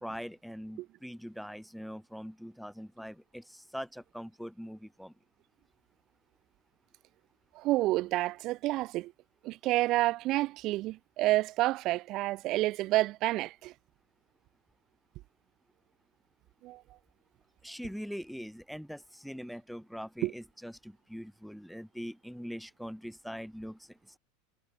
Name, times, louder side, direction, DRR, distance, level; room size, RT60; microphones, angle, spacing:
voice 1, 0.0-5.1 17.6-24.2, equal, ahead, 1.5 m, -42 dB
voice 2, 7.5-9.1 9.4-13.7 16.6-16.8 20.2-20.3, right 17 dB, 50° right, 0.6 m, -29 dB
supercardioid pair, 120°, 0 cm